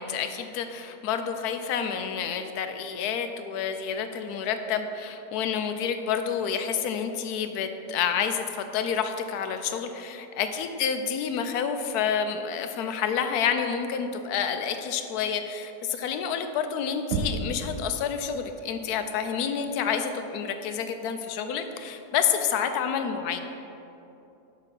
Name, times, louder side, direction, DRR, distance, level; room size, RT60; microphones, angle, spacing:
voice 1, 0.0-23.4, left 7 dB, 75° left, 7 dB, 1.1 m, -29 dB
Knock, 17.1-17.8, right 3 dB, 85° right, 1.2 m, -29 dB
6.5 x 4.8 x 6.0 m, 2.9 s
omnidirectional pair, 1.7 m